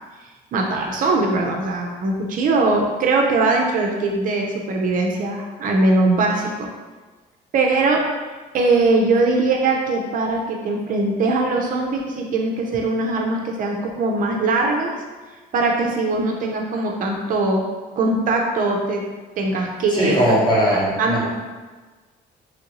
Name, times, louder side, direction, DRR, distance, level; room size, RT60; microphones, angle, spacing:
voice 1, 0.5-6.7 7.5-8.1 8.5-14.9 15.5-17.7 18.0-19.1 19.4-20.4 20.7-21.3, right 3 dB, 55° right, 1 dB, 0.5 m, -21 dB
voice 2, 19.9-21.3, equal, 25° left, -5 dB, 0.9 m, -19 dB
3.1 x 2.6 x 2.9 m, 1.3 s
cardioid pair, 110°, 17 cm